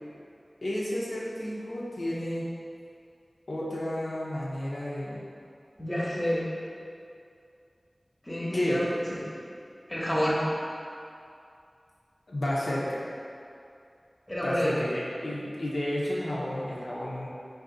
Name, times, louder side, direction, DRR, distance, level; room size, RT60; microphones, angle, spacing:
voice 1, 0.6-2.5 3.5-5.2 8.5-8.8 12.3-13.1 14.4-17.3, left 1 dB, 80° left, -6 dB, 0.6 m, -31 dB
voice 2, 5.8-6.4 8.2-8.9 9.9-10.4 14.3-14.7, equal, 20° left, -6 dB, 0.8 m, -28 dB
3.8 x 2.5 x 3.7 m, 2.5 s
wide cardioid pair, 55°, 0 cm